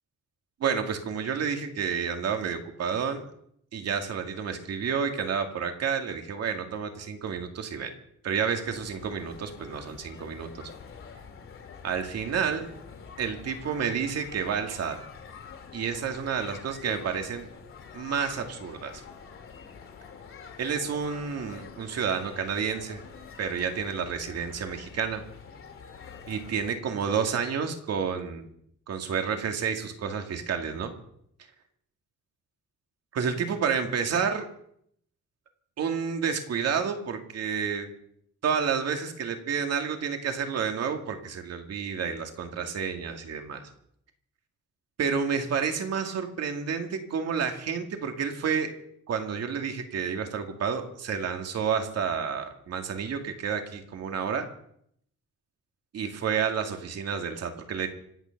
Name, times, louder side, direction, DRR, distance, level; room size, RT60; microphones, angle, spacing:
voice 1, 0.6-3.2 3.7-7.9 8.2-10.7 11.8-12.7 13.2-15.0 15.7-17.5 17.9-19.0 20.6-23.0 23.4-25.2 26.3-28.5 28.9-31.0 33.1-34.5 35.8-37.9 38.4-43.7 45.0-48.7 49.1-54.5 55.9-57.9, right 6 dB, 55° right, 5 dB, 2.4 m, -30 dB
sound 1, 8.6-26.7, left 6 dB, 45° left, 2.6 m, -46 dB
26.0 x 9.4 x 6.0 m, 0.69 s
wide cardioid pair, 175°, 30 cm